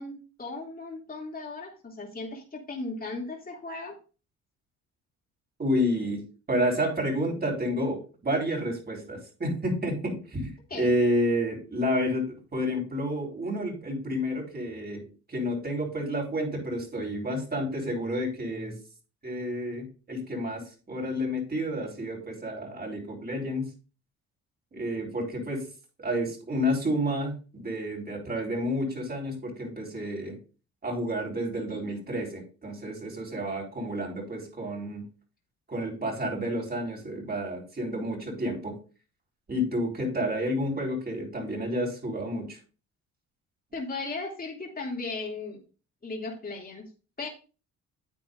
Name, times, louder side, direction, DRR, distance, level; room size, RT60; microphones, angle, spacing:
voice 1, 0.0-4.0 10.7-10.9 43.7-45.6 46.0-46.9 47.2-47.3, left 3 dB, 30° left, -1 dB, 2.7 m, -36 dB
voice 2, 5.6-6.2 6.5-18.8 19.2-23.7 24.7-25.7 26.0-30.4 30.8-35.0 35.7-38.8 39.5-42.6, equal, 30° right, -1 dB, 4.2 m, -30 dB
9.9 x 8.2 x 2.5 m, 0.35 s
cardioid pair, 90°, 30 cm